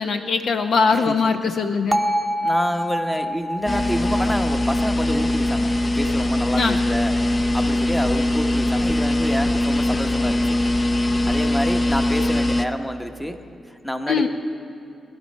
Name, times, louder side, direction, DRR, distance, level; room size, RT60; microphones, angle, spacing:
voice 1, 0.0-2.0 6.6-6.8 14.1-14.3, left 5 dB, 70° left, 6 dB, 0.9 m, -21 dB
Bell, 1.9-6.0, equal, 15° right, 0.8 m, -26 dB
voice 2, 2.4-7.1 7.5-10.6 11.3-13.4 13.7-14.3, equal, 10° left, 6 dB, 1.1 m, -28 dB
sound 1, 3.7-12.7, left 1 dB, 30° left, 0.7 m, -21 dB
21.5 x 12.0 x 5.4 m, 2.7 s
cardioid pair, 80°, 0 cm